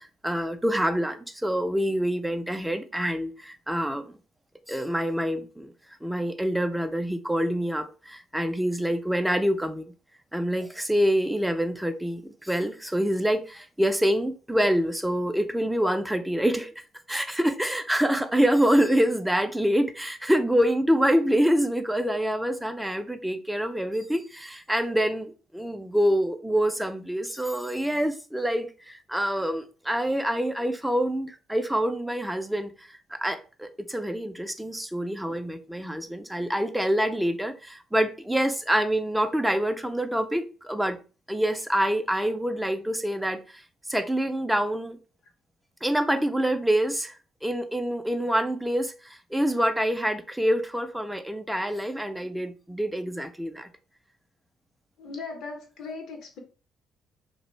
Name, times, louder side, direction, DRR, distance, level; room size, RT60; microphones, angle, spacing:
voice 1, 0.0-4.2 4.7-5.7 6.0-9.9 10.3-41.0 41.3-43.6 43.9-45.0 45.8-47.2 47.4-53.7, equal, 5° right, 0.5 m, -26 dB
voice 2, 55.0-56.4, left 4 dB, 70° left, 0.8 m, -38 dB
2.4 x 2.1 x 3.0 m
hypercardioid pair, 50°, 0 cm